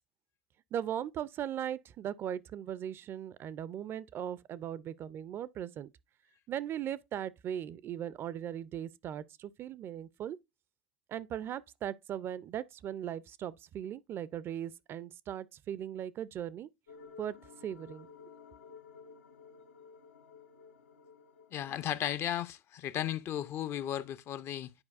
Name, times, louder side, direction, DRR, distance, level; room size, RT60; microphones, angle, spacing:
voice 1, 0.7-5.9 6.5-10.4 11.1-16.7 17.2-17.4 17.6-18.1, right 10 dB, 40° right, 0.4 m, -38 dB
sound 1, 16.9-21.9, left 6 dB, 85° left, 0.8 m, -54 dB
voice 2, 21.5-24.7, left 11 dB, 45° left, 0.4 m, -35 dB
9.7 x 4.6 x 2.4 m
hypercardioid pair, 85°, 6 cm